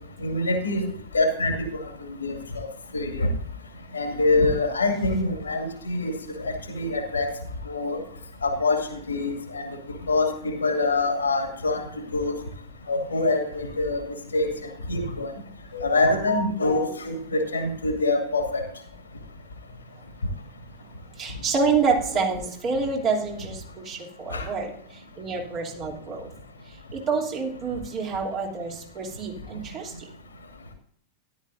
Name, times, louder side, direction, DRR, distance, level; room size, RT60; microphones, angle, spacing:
voice 1, 0.2-0.8 1.1-1.7 2.0-2.7 2.9-3.3 3.9-6.1 6.4-7.3 7.7-8.0 8.4-9.6 10.1-12.4 12.9-15.3 15.7-18.6 24.3-24.5, left 2 dB, 75° left, 4 dB, 2.2 m, -25 dB
voice 2, 21.2-26.3 26.9-30.1, right 4 dB, 35° right, -1 dB, 3.1 m, -27 dB
13.5 x 11.5 x 2.6 m, 0.63 s
figure-of-eight pair, 90°, 0 cm